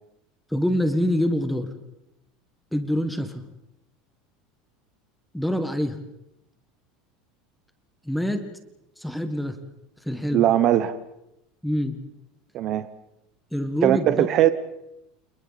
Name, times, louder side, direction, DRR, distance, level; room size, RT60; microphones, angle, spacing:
voice 1, 0.5-1.7 2.7-3.4 5.3-6.0 8.0-8.5 9.0-9.6 10.0-10.5 11.6-12.0 13.5-14.3, equal, ahead, 7 dB, 1.4 m, -25 dB
voice 2, 10.3-11.0 12.5-12.9 13.8-14.5, right 12 dB, 40° right, 12 dB, 0.9 m, -19 dB
29.0 x 29.0 x 4.1 m, 0.87 s
cardioid pair, 165°, 0 cm